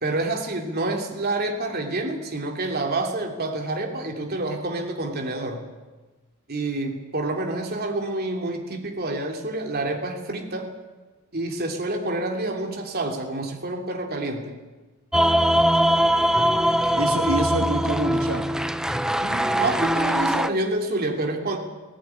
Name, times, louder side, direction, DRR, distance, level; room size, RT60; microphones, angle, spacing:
voice 1, 0.0-5.6 6.5-10.7 11.3-14.5 19.2-21.6, right 2 dB, 50° right, 3 dB, 3.0 m, -28 dB
sound 1, 15.1-20.5, equal, 5° right, 0.7 m, -21 dB
voice 2, 17.0-18.5, right 2 dB, 85° right, 4 dB, 2.7 m, -26 dB
18.0 x 17.0 x 10.0 m, 1.2 s
head